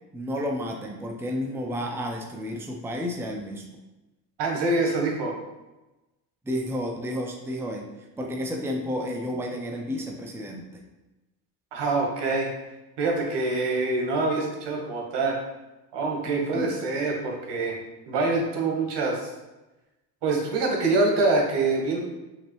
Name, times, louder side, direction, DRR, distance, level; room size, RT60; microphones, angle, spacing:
voice 1, 0.1-3.6 6.5-7.9 8.2-10.9 16.2-16.7, equal, 5° right, 1 dB, 0.6 m, -31 dB
voice 2, 4.4-5.3 11.7-12.5 13.0-15.4 15.9-17.7 18.1-19.3 20.2-22.0, right 3 dB, 65° right, 0 dB, 1.4 m, -25 dB
5.7 x 2.9 x 3.1 m, 1.0 s
supercardioid pair, 70°, 45 cm